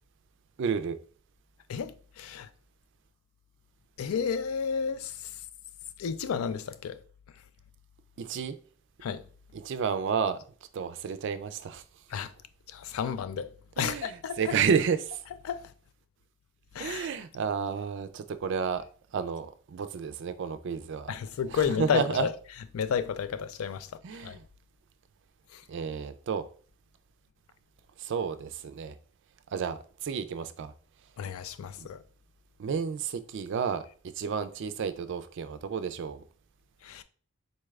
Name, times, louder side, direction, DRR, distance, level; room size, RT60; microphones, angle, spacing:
voice 1, 0.6-1.0 8.2-8.5 9.5-10.4 10.7-11.8 13.8-15.2 16.8-18.8 19.1-21.1 21.8-22.3 24.0-24.4 25.7-26.4 28.0-28.9 29.5-30.7 31.8-31.9 32.6-36.2, right 6 dB, 60° right, 0.4 m, -31 dB
voice 2, 1.7-2.5 4.0-5.4 6.0-7.0 9.0-9.2 12.1-12.3 12.7-14.6 15.4-15.7 16.7-17.1 21.1-22.3 22.7-23.9 24.2-24.4 25.5-25.6 31.2-32.0 36.8-37.0, left 7 dB, 85° left, 0.3 m, -32 dB
4.1 x 2.3 x 3.2 m
head